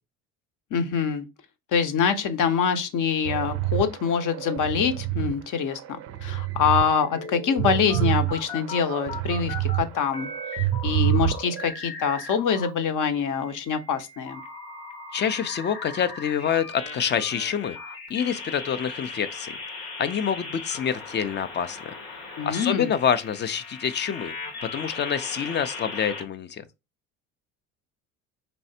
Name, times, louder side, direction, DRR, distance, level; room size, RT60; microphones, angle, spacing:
voice 1, 0.7-1.3 1.7-10.3 10.8-14.4 22.4-22.9, left 6 dB, 50° left, 0.8 m, -25 dB
sound 1, 3.2-5.3 5.8-6.9 7.2-9.9 10.2-11.7, right 15 dB, 40° right, 0.4 m, -27 dB
sound 2, 7.1-9.8 10.1-12.7 13.1-26.2, left 3 dB, 75° left, 1.3 m, -38 dB
voice 2, 15.1-17.8 18.1-21.9 22.4-24.3 24.6-26.6, left 8 dB, 25° left, 0.4 m, -27 dB
4.3 x 3.1 x 2.7 m
hypercardioid pair, 65°, 41 cm